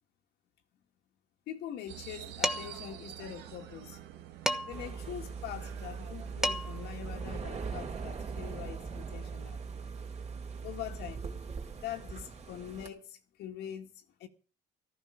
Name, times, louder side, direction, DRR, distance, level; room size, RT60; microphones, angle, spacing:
voice 1, 1.5-4.2 4.7-9.6 10.6-11.3 11.8-14.3, left 11 dB, 80° left, 2.0 m, -43 dB
sound 1, 1.9-11.8, right 12 dB, 85° right, 1.8 m, -50 dB
Dishes pots and pans, 2.4-2.9 4.5-4.9 6.1-6.2 6.4-6.9, equal, 5° right, 1.2 m, -32 dB
slow breath relax, 4.7-12.9, right 5 dB, 40° right, 3.0 m, -40 dB
14.0 x 14.0 x 5.2 m
cardioid pair, 110°, 17 cm